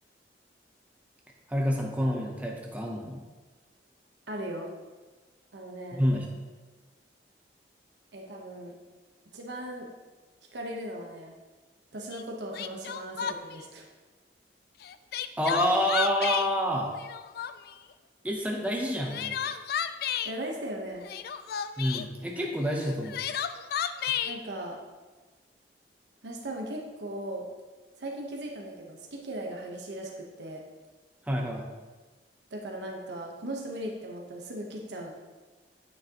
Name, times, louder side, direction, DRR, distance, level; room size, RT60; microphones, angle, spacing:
voice 1, 1.5-3.2 5.9-6.3 15.4-16.9 18.2-19.4 21.8-23.2 31.3-31.7, equal, 10° right, 0 dB, 0.7 m, -28 dB
voice 2, 4.3-4.7 5.5-6.1 8.1-8.8 9.3-9.9 10.5-11.4 11.9-13.8 20.2-21.1 24.2-24.8 26.2-27.5 28.0-30.6 32.5-35.1, right 1 dB, 80° right, 0 dB, 1.0 m, -38 dB
Crying sobbing, 12.1-12.2 12.5-13.6 14.8-16.5 16.9-17.7 18.8-20.3 21.0-22.1 22.8-24.4, left 8 dB, 60° left, 0.3 m, -32 dB
9.3 x 6.4 x 2.9 m, 1.3 s
head